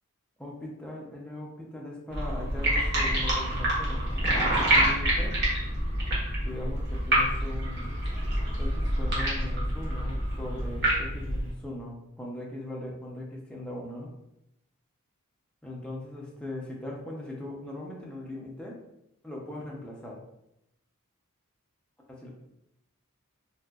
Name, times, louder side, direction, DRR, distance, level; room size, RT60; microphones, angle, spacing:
voice 1, 0.4-5.4 6.4-7.9 8.6-14.1 15.6-18.8 19.2-20.2 22.2-22.3, left 1 dB, 5° left, -3 dB, 0.5 m, -39 dB
sound 1, 2.1-11.5, right 1 dB, 50° right, 1.1 m, -27 dB
3.4 x 2.9 x 2.3 m, 0.83 s
head